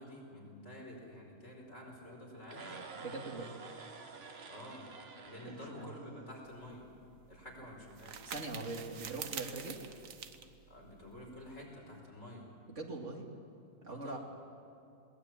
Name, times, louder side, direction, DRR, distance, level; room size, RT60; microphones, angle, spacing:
voice 1, 0.0-2.7 4.5-4.8 5.2-6.9 7.3-8.2 10.7-12.5 13.9-14.2, left 1 dB, 60° left, -2 dB, 5.5 m, -49 dB
sound 1, 2.4-6.6, right 4 dB, 50° right, 1.6 m, -50 dB
voice 2, 3.0-3.5 5.7-5.9 8.2-9.8 12.8-13.3 13.8-14.2, right 3 dB, 65° right, 1 dB, 2.6 m, -42 dB
sound 2, 6.4-11.6, right 7 dB, 90° right, 1.5 m, -47 dB
21.5 x 19.0 x 8.9 m, 2.5 s
omnidirectional pair, 1.3 m